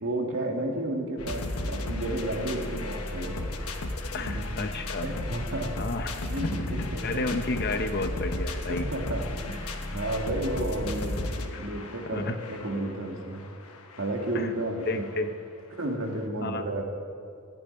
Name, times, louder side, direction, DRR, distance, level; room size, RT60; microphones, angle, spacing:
voice 1, 0.0-3.8 4.2-4.4 5.0-5.7 6.3-7.2 8.7-13.4 14.0-15.0 15.8-16.8, right 1 dB, 60° right, 1 dB, 1.9 m, -32 dB
sound 1, 1.2-15.3 15.9-16.0 16.1-16.2, left 2 dB, 80° left, 1.2 m, -35 dB
voice 2, 4.1-5.1 5.8-6.1 6.4-8.9 11.5-11.6 12.1-12.3 14.3-14.5 14.9-15.3 16.4-16.7, left 2 dB, 45° left, 7 dB, 0.8 m, -31 dB
15.5 x 6.9 x 9.8 m, 2.5 s
head